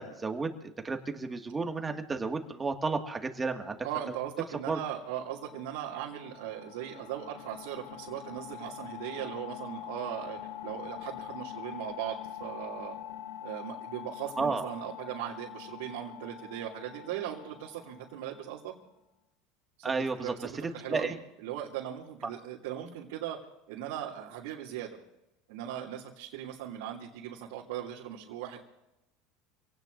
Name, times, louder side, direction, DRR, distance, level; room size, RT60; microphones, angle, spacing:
voice 1, 0.0-3.8 4.7-4.8 14.4-14.7 19.8-20.5 20.9-21.1, right 4 dB, 20° right, 4 dB, 2.0 m, -32 dB
voice 2, 3.8-13.0 13.4-18.7 19.8-23.4 23.7-25.0 25.5-28.6, right 11 dB, 80° right, -4 dB, 2.8 m, -39 dB
sound 1, 5.2-18.6, left 11 dB, 90° left, 0.9 m, -44 dB
27.0 x 17.5 x 2.7 m, 0.91 s
supercardioid pair, 110°, 0 cm